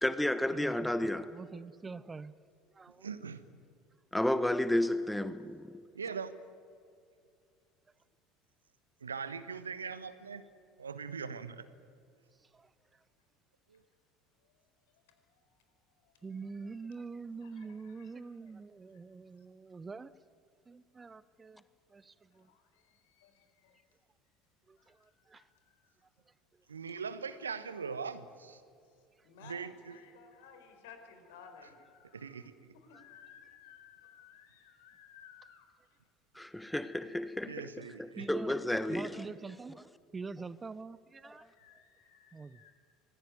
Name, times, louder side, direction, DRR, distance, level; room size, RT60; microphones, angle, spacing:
voice 1, 0.0-1.3 4.1-5.8 36.3-37.7 38.0-39.3, left 1 dB, 5° left, 13 dB, 1.1 m, -32 dB
voice 2, 1.0-2.3 2.7-3.1 12.5-12.7 16.2-20.1 20.7-21.6 21.9-22.5 24.7-25.4 29.2-29.3 38.1-38.6 38.9-41.5 42.3-42.6, right 4 dB, 20° right, 18 dB, 0.7 m, -45 dB
voice 3, 3.0-3.4 5.9-6.4 9.0-10.4 10.8-11.7 13.7-13.8 26.7-28.6 29.4-30.0 32.1-32.5 37.4-38.3, right 5 dB, 85° right, 14 dB, 1.1 m, -41 dB
voice 4, 14.4-15.4 15.9-16.8 17.4-18.3 18.9-19.0 19.4-19.5 22.3-23.8 24.8-26.0 28.8-32.4 32.7-36.0 41.3-42.7, left 7 dB, 70° left, 6 dB, 4.5 m, -58 dB
25.5 x 19.0 x 9.4 m, 2.5 s
figure-of-eight pair, 70°, 0 cm